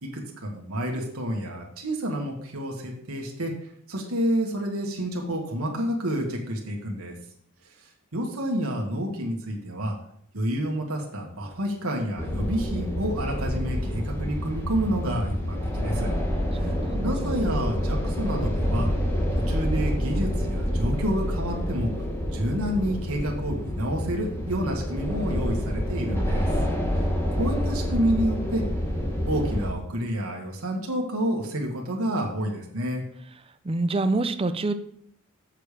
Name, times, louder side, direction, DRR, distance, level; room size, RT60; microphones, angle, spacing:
voice 1, 0.0-3.5 3.9-7.1 8.1-9.9 10.3-16.1 16.6-16.7 17.0-18.9 19.5-21.9 22.3-26.5 27.4-28.6 29.3-33.0, equal, 80° right, 0 dB, 1.6 m, -29 dB
sound 1, 12.2-29.7, equal, 10° left, 1.4 m, -27 dB
voice 2, 16.6-17.4 33.6-34.7, right 2 dB, 25° right, 10 dB, 0.5 m, -27 dB
6.7 x 6.6 x 5.0 m, 0.66 s
head